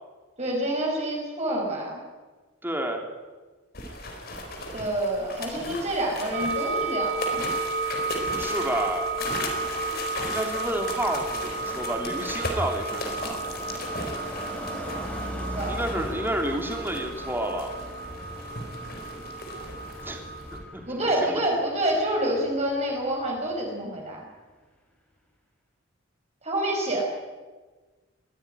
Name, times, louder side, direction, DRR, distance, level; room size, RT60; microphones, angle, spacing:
voice 1, 0.4-2.0 4.7-7.3 15.5-15.8 20.9-24.2 26.4-27.0, right 1 dB, 30° right, -1 dB, 5.2 m, -27 dB
voice 2, 2.6-3.0 8.3-9.1 10.2-13.4 15.7-17.7 20.0-20.2 20.5-20.8 21.2-21.4, right 1 dB, 10° right, 3 dB, 3.0 m, -30 dB
sound 1, 3.7-20.6, left 1 dB, 45° left, 4.1 m, -36 dB
sound 2, 6.3-20.6, right 3 dB, 50° right, 5.1 m, -33 dB
Car passing by, 9.2-23.7 24.0-24.3, equal, 5° left, 4.8 m, -41 dB
22.0 x 16.0 x 9.8 m, 1.3 s
head